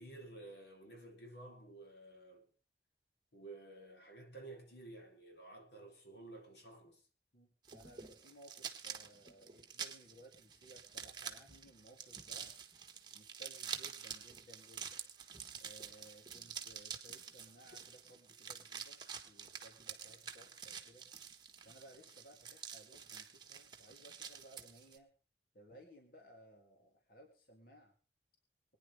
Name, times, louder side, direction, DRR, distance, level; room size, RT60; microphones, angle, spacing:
voice 1, 0.0-2.5 3.3-7.0 25.7-25.8, right 2 dB, 75° left, 3.9 m, -53 dB
voice 2, 7.3-12.5 13.1-15.0 15.6-21.1 21.6-25.1 25.5-27.9, right 1 dB, 55° left, 3.0 m, -60 dB
sound 1, 7.6-25.0, right 7 dB, 25° right, 1.5 m, -48 dB
24.5 x 10.0 x 3.6 m
head